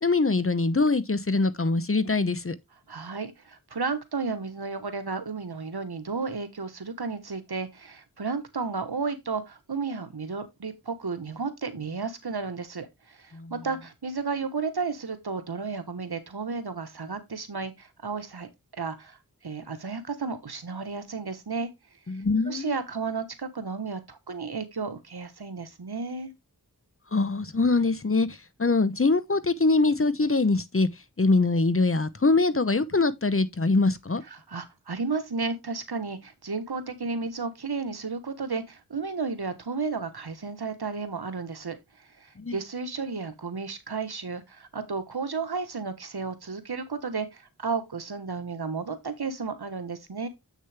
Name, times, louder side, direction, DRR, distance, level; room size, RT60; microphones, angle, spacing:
voice 1, 0.0-2.5 13.3-13.5 22.1-22.7 27.1-30.9 31.2-34.2 42.4-42.6, left 3 dB, 35° left, 0.8 m, -23 dB
voice 2, 2.9-19.2 19.4-21.7 22.5-26.3 34.3-50.3, right 4 dB, 85° right, 1.3 m, -33 dB
7.6 x 6.5 x 3.4 m
wide cardioid pair, 40°, 37 cm